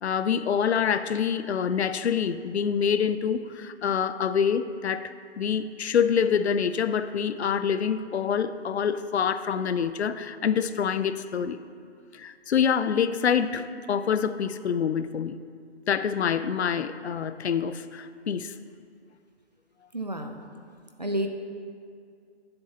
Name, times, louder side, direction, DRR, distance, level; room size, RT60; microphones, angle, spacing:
voice 1, 0.0-11.6 12.1-15.4 15.9-18.6, left 7 dB, 70° left, 12 dB, 0.5 m, -26 dB
voice 2, 19.9-20.4 21.0-21.3, right 1 dB, 40° right, 5 dB, 0.5 m, -30 dB
9.2 x 7.7 x 2.8 m, 2.2 s
hypercardioid pair, 175°, 34 cm